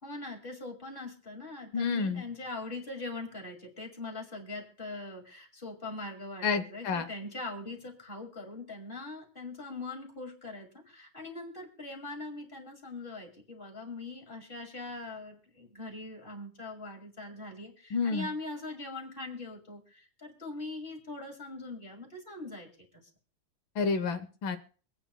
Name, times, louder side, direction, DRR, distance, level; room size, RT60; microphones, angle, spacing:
voice 1, 0.0-23.0, left 2 dB, 25° left, 2 dB, 2.3 m, -42 dB
voice 2, 1.7-2.2 6.4-7.1 17.9-18.3 23.7-24.6, left 5 dB, 70° left, 9 dB, 1.7 m, -29 dB
24.0 x 9.0 x 2.3 m, 0.41 s
omnidirectional pair, 2.3 m